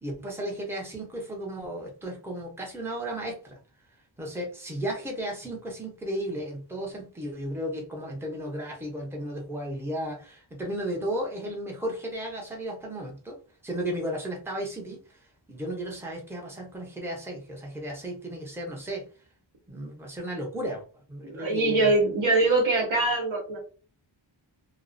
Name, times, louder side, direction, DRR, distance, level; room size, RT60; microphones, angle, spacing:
voice 1, 0.0-3.6 4.2-13.4 13.6-15.2 15.5-19.1 19.7-20.8 21.1-22.1, right 1 dB, 5° right, -1 dB, 0.7 m, -34 dB
voice 2, 21.2-23.6, right 2 dB, 80° right, 1 dB, 1.0 m, -23 dB
2.4 x 2.0 x 2.5 m, 0.38 s
wide cardioid pair, 85°, 48 cm